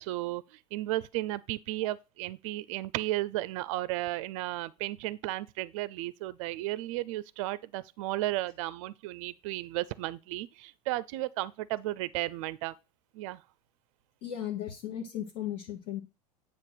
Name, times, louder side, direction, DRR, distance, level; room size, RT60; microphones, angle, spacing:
voice 1, 0.0-12.7 13.1-13.4, right 17 dB, 50° right, 0.5 m, -34 dB
voice 2, 14.2-16.0, left 11 dB, 50° left, 1.1 m, -36 dB
8.9 x 3.0 x 5.9 m
figure-of-eight pair, 85°, 21 cm